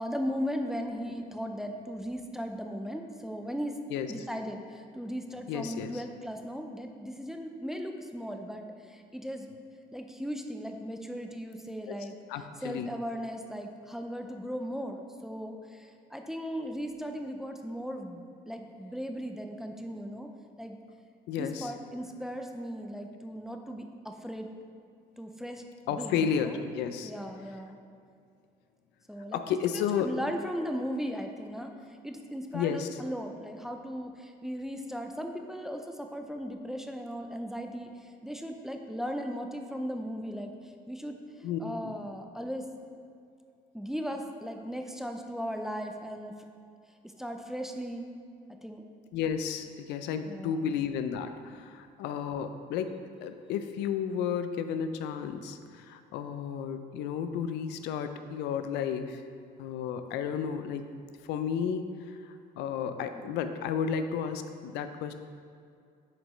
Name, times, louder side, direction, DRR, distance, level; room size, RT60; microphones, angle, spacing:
voice 1, 0.0-3.8 4.1-9.5 9.9-12.2 12.6-20.3 20.6-20.8 21.4-24.5 25.2-25.6 25.9-26.6 27.0-27.8 29.1-29.4 29.7-42.7 43.7-46.3 47.2-48.1 48.6-48.8 50.3-50.7, equal, ahead, 4 dB, 0.4 m, -37 dB
voice 2, 5.5-6.0 11.9-12.0 12.3-12.9 21.3-21.7 25.9-27.1 29.3-30.1 32.5-32.9 41.4-42.0 49.1-59.2 59.6-60.9 61.2-65.1, left 7 dB, 85° left, 9 dB, 0.4 m, -32 dB
7.3 x 5.1 x 3.1 m, 2.4 s
cardioid pair, 110°, 17 cm